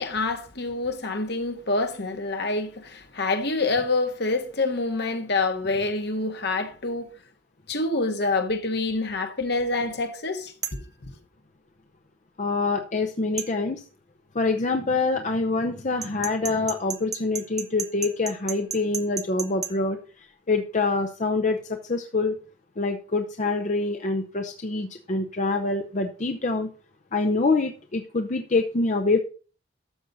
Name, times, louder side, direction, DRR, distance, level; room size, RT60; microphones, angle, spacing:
voice 1, 0.0-7.1 7.7-11.2, left 3 dB, 60° left, 1.5 m, -27 dB
sound 1, 10.6-10.9 13.4-13.5 16.0-19.7, right 6 dB, 20° right, 0.9 m, -32 dB
voice 2, 12.4-13.8 14.3-21.6 21.9-22.4 22.8-26.7 27.1-29.2, left 3 dB, 40° left, 0.7 m, -25 dB
12.5 x 7.0 x 4.0 m
head